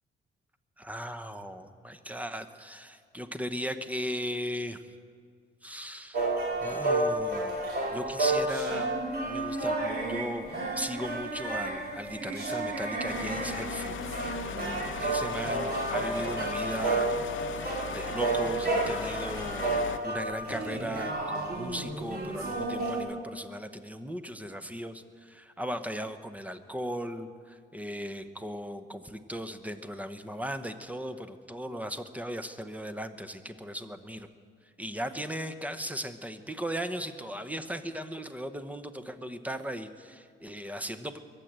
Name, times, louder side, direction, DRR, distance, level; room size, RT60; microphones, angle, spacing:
voice 1, 0.8-4.8 5.6-6.3 6.6-7.6 7.9-8.9 9.2-10.5 10.8-14.0 14.4-17.1 17.9-34.3 34.8-41.2, equal, 5° right, 9 dB, 1.0 m, -37 dB
sound 1, 6.1-23.0, right 2 dB, 50° right, 3.1 m, -31 dB
sound 2, 13.1-20.0, left 9 dB, 75° left, 0.9 m, -39 dB
22.5 x 7.7 x 8.1 m, 2.1 s
cardioid pair, 100°, 20 cm